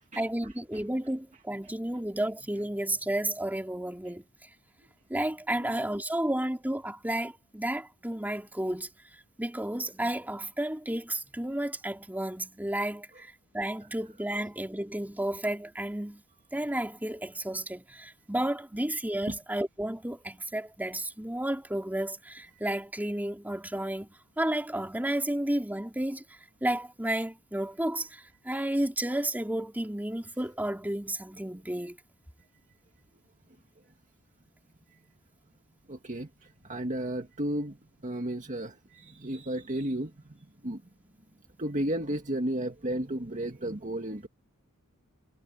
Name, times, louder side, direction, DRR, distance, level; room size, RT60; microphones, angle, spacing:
voice 1, 0.1-4.2 5.1-8.9 9.4-16.2 16.5-24.1 24.4-26.2 26.6-32.0, right 1 dB, 10° right, 3.5 m, -32 dB
voice 2, 35.9-37.8 38.0-40.2 40.6-40.8 41.6-44.3, right 1 dB, 35° right, 1.9 m, -33 dB
head